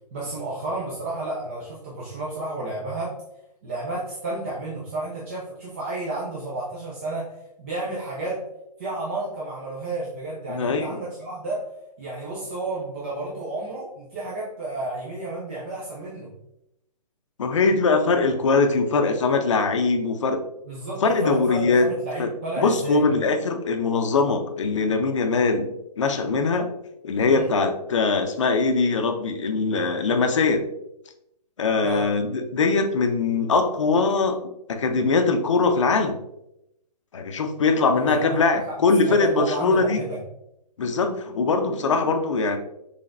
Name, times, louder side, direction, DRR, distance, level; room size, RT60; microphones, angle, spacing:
voice 1, 0.1-3.1 3.6-7.3 7.6-8.4 8.8-11.6 12.0-16.3 20.7-23.1 27.3-27.5 31.8-32.1 37.9-38.8 39.1-40.2, right 2 dB, 20° right, -5 dB, 0.5 m, -31 dB
voice 2, 10.5-11.0 17.4-20.5 21.0-21.9 22.2-22.3 22.6-25.7 26.0-26.7 27.0-30.6 31.6-34.4 34.7-36.2 37.1-40.0 40.8-42.6, left 4 dB, 45° left, 6 dB, 0.6 m, -22 dB
5.8 x 3.4 x 2.5 m, 0.82 s
hypercardioid pair, 170°, 21 cm